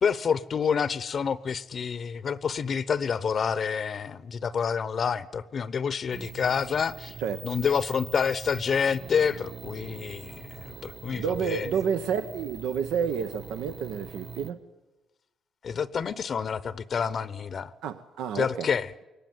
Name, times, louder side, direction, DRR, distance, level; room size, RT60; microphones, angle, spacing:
voice 1, 0.0-7.1 7.4-11.7 15.6-17.7 18.3-18.9, left 6 dB, 50° left, 17 dB, 0.8 m, -28 dB
sound 1, 6.1-14.5, right 6 dB, 45° right, 1.9 m, -43 dB
voice 2, 11.1-14.6 17.8-18.7, right 7 dB, 90° right, 9 dB, 0.9 m, -30 dB
22.0 x 18.5 x 9.3 m, 1.1 s
cardioid pair, 90°, 0 cm